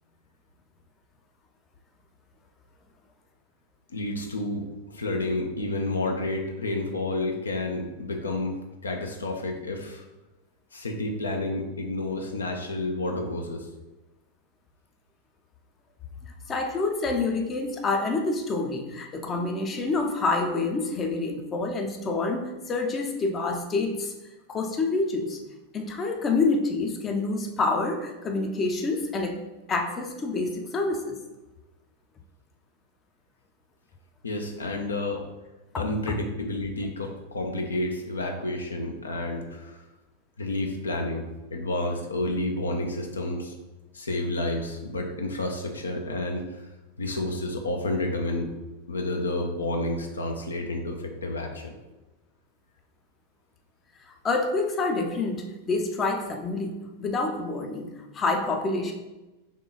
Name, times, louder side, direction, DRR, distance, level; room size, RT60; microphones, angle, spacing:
voice 1, 3.9-8.6 8.8-10.0 10.7-13.7 34.2-35.2 35.8-39.7 40.4-43.5 43.9-46.5 47.0-48.5 48.9-51.7, left 2 dB, 75° left, 3 dB, 0.5 m, -30 dB
voice 2, 16.5-24.1 24.5-25.4 25.7-29.4 29.7-31.2 54.2-58.9, left 3 dB, 25° left, 4 dB, 0.5 m, -27 dB
3.7 x 3.1 x 3.8 m, 1.1 s
figure-of-eight pair, 90°, 0 cm